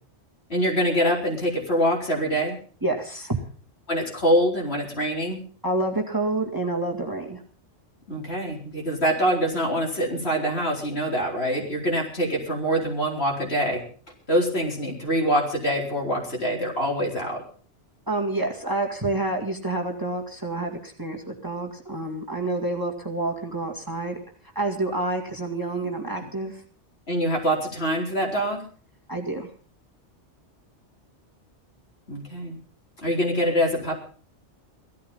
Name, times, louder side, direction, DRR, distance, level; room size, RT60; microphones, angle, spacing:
voice 1, 0.5-2.6 3.9-5.5 8.1-13.8 14.3-17.4 27.1-28.6 32.1-32.6 33.0-34.0, equal, 60° left, -1 dB, 4.6 m, -24 dB
voice 2, 2.8-3.4 5.6-7.4 18.1-24.2 24.6-26.6 29.1-29.5, right 2 dB, 15° right, 2 dB, 2.2 m, -28 dB
16.5 x 13.5 x 5.5 m, 0.43 s
omnidirectional pair, 1.2 m